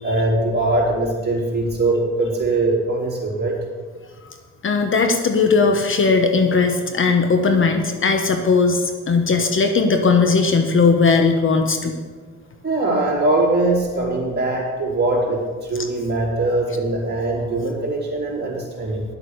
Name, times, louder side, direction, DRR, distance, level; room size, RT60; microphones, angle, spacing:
voice 1, 0.0-3.6 12.6-19.0, right 2 dB, 35° right, -3 dB, 3.9 m, -21 dB
voice 2, 4.6-11.9, left 4 dB, 40° left, 6 dB, 1.2 m, -18 dB
10.5 x 7.8 x 6.7 m, 1.4 s
cardioid pair, 90°, 30 cm